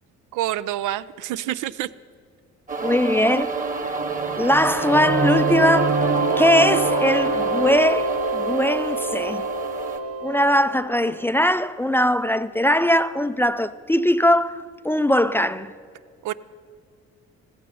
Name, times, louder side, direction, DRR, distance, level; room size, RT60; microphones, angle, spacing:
voice 1, 0.3-1.9 16.2-16.3, right 13 dB, 85° right, 0.5 m, -27 dB
sound 1, 2.7-10.0, right 4 dB, 25° right, 1.2 m, -26 dB
voice 2, 2.8-3.5 4.4-6.0 6.4-9.4 10.2-15.7, left 1 dB, 10° left, 0.3 m, -20 dB
sound 2, 4.6-11.3, right 2 dB, 55° right, 1.0 m, -26 dB
15.0 x 14.0 x 5.5 m
cardioid pair, 90°, 30 cm